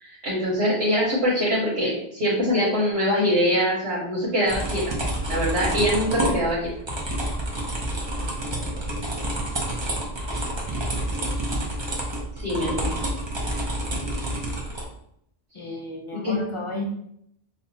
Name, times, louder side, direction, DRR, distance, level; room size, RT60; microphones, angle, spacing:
voice 1, 0.0-4.8 5.3-6.7 12.4-12.9 13.5-13.6 16.1-16.3, equal, 85° right, -7 dB, 1.3 m, -23 dB
sound 1, 4.5-14.8, right 1 dB, 30° right, 0.7 m, -28 dB
voice 2, 8.0-8.3 8.8-9.0 15.5-16.8, left 2 dB, 45° left, 2 dB, 0.4 m, -34 dB
5.5 x 2.2 x 2.7 m, 0.73 s
omnidirectional pair, 1.1 m